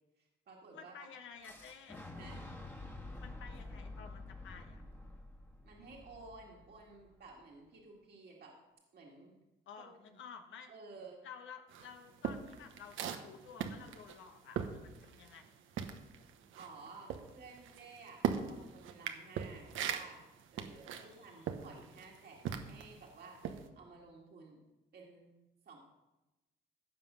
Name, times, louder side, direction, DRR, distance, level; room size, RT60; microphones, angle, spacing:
voice 1, 0.2-0.9 2.2-2.4 5.6-8.6 8.9-9.4 9.8-10.2 10.7-11.2 16.6-20.2 20.5-24.6 24.9-25.3 25.7-25.8, right 3 dB, 55° right, -1 dB, 2.0 m, -54 dB
voice 2, 0.7-2.0 3.2-4.8 9.7-10.7 11.2-15.6 20.9-21.5, left 6 dB, 75° left, 5 dB, 1.2 m, -53 dB
Boom, 1.4-7.3, left 2 dB, 10° left, 1.6 m, -49 dB
sound 1, 11.7-15.5 15.7-23.0 23.4-23.7, right 8 dB, 80° right, 1.0 m, -39 dB
15.0 x 5.4 x 6.2 m, 1.1 s
cardioid pair, 90°, 20 cm